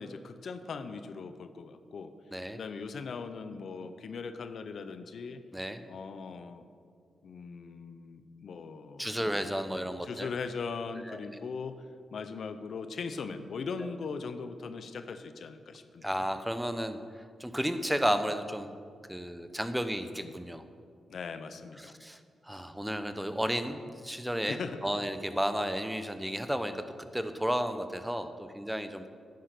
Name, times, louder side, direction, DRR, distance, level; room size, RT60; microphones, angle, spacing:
voice 1, 0.0-2.1 2.5-5.4 5.9-6.6 7.2-11.9 12.1-16.2 20.1-20.4 21.1-22.0 24.5-25.0, left 5 dB, 70° left, 10 dB, 0.7 m, -40 dB
voice 2, 9.0-10.3 11.1-11.2 16.0-17.0 17.4-18.7 19.1-20.6 21.8-22.2 22.5-24.6 24.8-26.8 27.1-29.1, equal, 5° right, 9 dB, 0.9 m, -32 dB
10.5 x 10.0 x 6.1 m, 2.2 s
cardioid pair, 65°, 0 cm